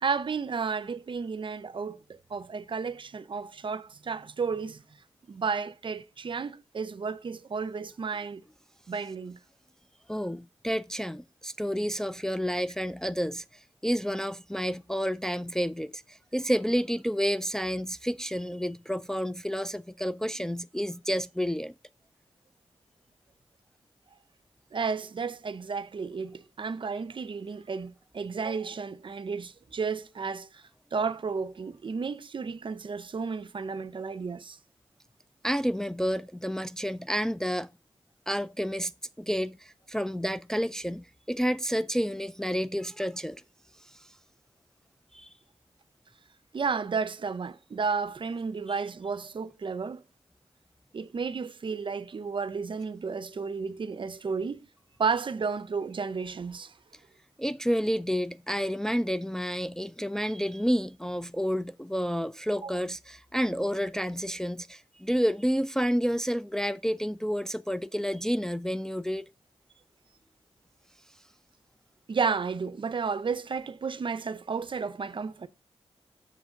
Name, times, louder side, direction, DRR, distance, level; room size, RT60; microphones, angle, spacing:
voice 1, 0.0-4.8 5.3-8.4 8.9-9.4 24.7-30.6 30.9-34.6 46.5-50.1 50.9-54.7 55.0-56.7 62.6-62.7 72.1-75.5, right 5 dB, 55° right, 0.5 m, -32 dB
voice 2, 10.1-13.4 13.8-21.7 35.4-37.7 38.3-38.9 39.2-43.4 45.1-45.3 57.4-69.3, equal, 5° left, 0.3 m, -30 dB
7.1 x 3.6 x 6.2 m
cardioid pair, 60°, 10 cm